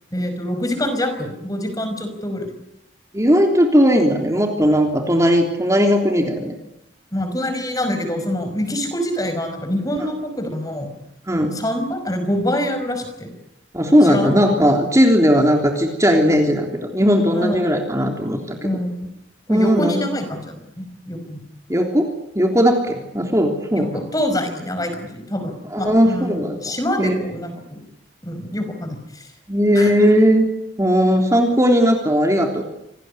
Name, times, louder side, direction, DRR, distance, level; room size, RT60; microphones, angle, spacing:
voice 1, 0.1-2.5 7.1-10.9 11.5-13.4 14.0-14.3 17.3-17.6 18.6-19.1 19.5-21.4 23.7-23.9 24.1-27.8 28.2-29.3 29.8-29.9, left 1 dB, 20° left, 7 dB, 5.2 m, -25 dB
voice 2, 3.1-6.5 11.3-11.6 13.7-18.7 19.5-20.0 21.7-22.1 22.3-24.1 25.7-27.2 29.5-30.4 30.8-32.6, equal, 15° right, 3 dB, 3.3 m, -17 dB
26.5 x 19.5 x 9.9 m, 0.83 s
head